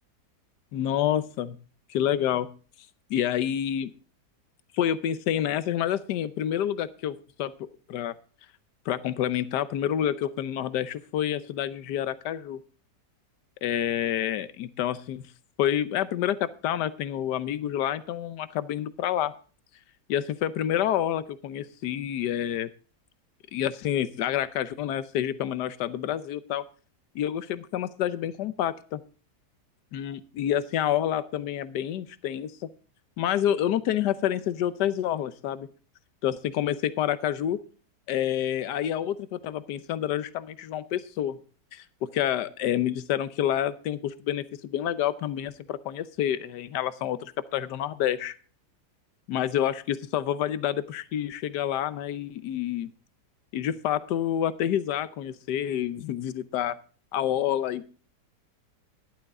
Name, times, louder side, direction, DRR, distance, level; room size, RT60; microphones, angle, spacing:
voice 1, 0.7-1.6 1.9-2.5 3.1-3.9 4.7-8.1 8.9-12.6 13.6-15.2 15.6-19.3 20.1-22.7 23.5-26.6 27.1-29.0 29.9-32.5 33.2-35.7 36.2-37.6 38.1-41.4 41.7-48.3 49.3-52.9 53.5-56.8 57.1-57.8, left 10 dB, 75° left, 14 dB, 1.4 m, -28 dB
12.0 x 11.5 x 3.6 m, 0.39 s
omnidirectional pair, 1.8 m